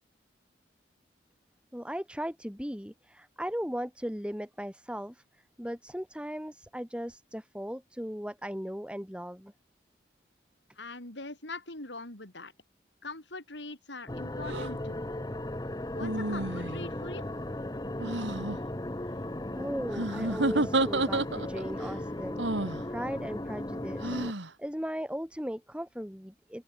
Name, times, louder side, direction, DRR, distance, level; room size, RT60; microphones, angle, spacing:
voice 1, 1.7-5.2 5.6-9.5 19.5-24.2 24.6-26.6, equal, 5° right, 4.9 m, -37 dB
voice 2, 10.7-12.5 13.0-15.0 15.9-17.3, left 2 dB, 80° left, 6.8 m, -42 dB
sound 1, 14.1-24.3, left 1 dB, 20° left, 1.0 m, -36 dB
sound 2, 14.4-14.7 16.0-16.9 18.0-18.6 19.9-21.7 22.4-22.8 24.0-24.5, right 2 dB, 90° right, 2.9 m, -30 dB
open air
head